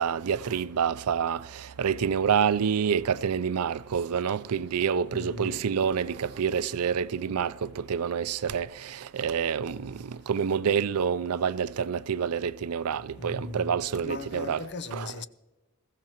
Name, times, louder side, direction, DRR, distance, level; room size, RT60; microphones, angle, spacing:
voice 1, 0.0-14.6 14.9-15.1, right 7 dB, 90° right, 0.5 m, -28 dB
voice 2, 5.1-5.6 13.2-13.8 14.0-15.3, left 3 dB, 50° left, 0.6 m, -38 dB
sound 1, 5.7-9.8, right 2 dB, 25° right, 1.9 m, -53 dB
20.5 x 15.5 x 3.0 m
head